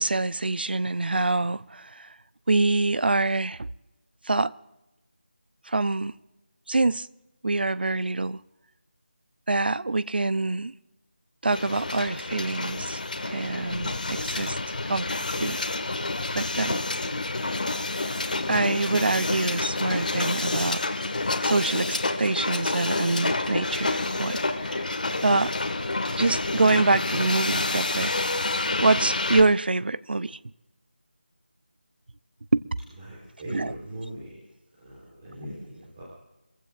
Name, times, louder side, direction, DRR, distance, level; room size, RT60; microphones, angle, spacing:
voice 1, 0.0-2.1 2.5-3.7 4.3-4.5 5.7-6.1 6.7-7.1 7.4-8.4 9.5-10.7 11.4-13.0 13.3-15.7 16.3-16.8 18.5-20.9 21.4-24.9 25.2-25.5 26.2-28.1 28.8-30.4 32.5-32.6 33.5-33.7, right 2 dB, 65° right, 0.6 m, -25 dB
Hiss, 11.5-29.4, left 2 dB, 50° left, 1.6 m, -28 dB
voice 2, 33.0-34.5 34.8-36.0, right 1 dB, 20° right, 3.5 m, -39 dB
24.0 x 15.5 x 2.5 m
figure-of-eight pair, 170°, 6 cm